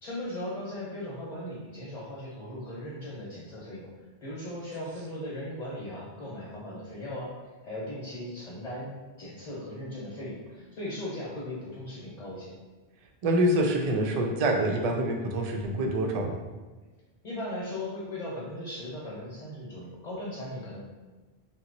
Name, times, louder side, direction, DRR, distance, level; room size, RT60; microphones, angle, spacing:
voice 1, 0.0-3.9 4.2-7.3 7.6-12.5 17.2-20.8, left 1 dB, 45° left, -7 dB, 0.9 m, -38 dB
voice 2, 13.2-16.4, right 1 dB, 55° right, 2 dB, 0.4 m, -26 dB
2.8 x 2.1 x 3.9 m, 1.2 s
omnidirectional pair, 1.1 m